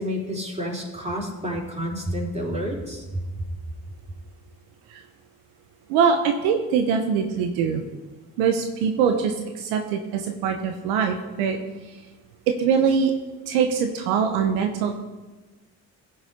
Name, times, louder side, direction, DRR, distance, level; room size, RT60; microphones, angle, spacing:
voice 1, 0.0-3.2, equal, 15° right, -2 dB, 4.2 m, -29 dB
voice 2, 5.9-7.8 8.4-11.6 12.5-13.1 13.5-15.0, right 6 dB, 80° right, 5 dB, 1.0 m, -23 dB
16.0 x 5.7 x 5.1 m, 1.2 s
hypercardioid pair, 50°, 39 cm